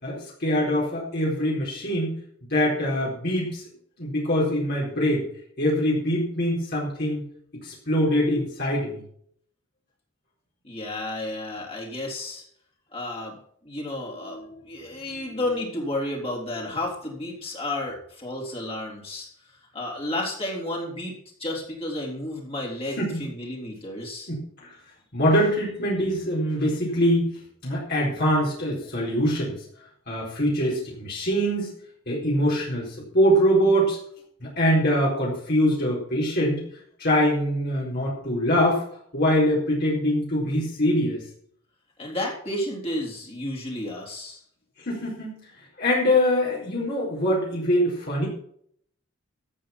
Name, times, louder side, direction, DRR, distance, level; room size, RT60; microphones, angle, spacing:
voice 1, 0.0-3.6 4.0-5.2 5.6-7.2 7.5-9.0 14.2-14.6 15.2-15.4 23.0-23.2 24.3-24.7 25.1-27.3 27.6-29.6 30.1-31.7 32.1-34.0 34.4-36.6 37.0-38.8 39.1-41.2 44.8-48.3, equal, 45° left, -5 dB, 4.4 m, -24 dB
voice 2, 10.6-12.4 12.9-24.3 42.0-44.4, left 1 dB, 25° left, -2 dB, 3.8 m, -32 dB
14.0 x 8.6 x 6.0 m, 0.64 s
head